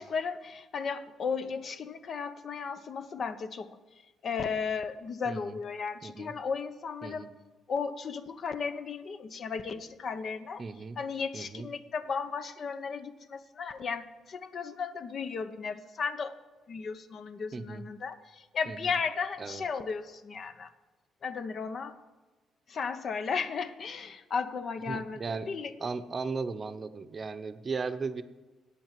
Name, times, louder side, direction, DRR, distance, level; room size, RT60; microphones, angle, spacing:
voice 1, 0.0-3.8 4.2-7.3 7.7-10.6 11.0-16.3 16.7-20.7 21.2-22.0 22.7-25.2 25.5-25.7, left 5 dB, 55° left, 10 dB, 0.8 m, -35 dB
voice 2, 5.2-5.6 6.0-6.3 7.0-7.3 10.6-11.0 11.3-11.7 17.5-17.9 18.7-18.9 19.4-19.6 24.9-25.5 25.8-28.2, right 4 dB, 35° right, 11 dB, 0.7 m, -36 dB
9.2 x 8.5 x 7.5 m, 1.2 s
cardioid pair, 95°, 0 cm